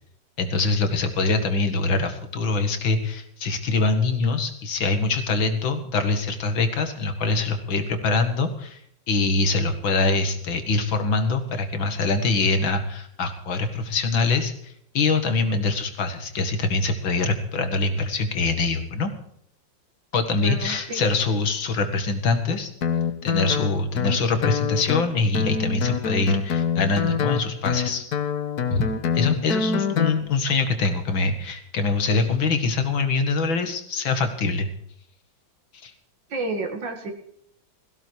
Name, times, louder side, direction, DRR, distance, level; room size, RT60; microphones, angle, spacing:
voice 1, 0.4-8.8 9.1-19.1 20.1-22.7 23.2-28.0 28.7-28.8 29.1-34.7 35.8-35.9, left 3 dB, 80° left, 8 dB, 2.7 m, -24 dB
voice 2, 20.4-21.0 36.3-37.1, right 2 dB, 70° right, 4 dB, 2.6 m, -30 dB
Guitar, 22.8-30.2, left 6 dB, 55° left, 1.5 m, -26 dB
17.0 x 16.0 x 4.8 m, 0.68 s
omnidirectional pair, 2.1 m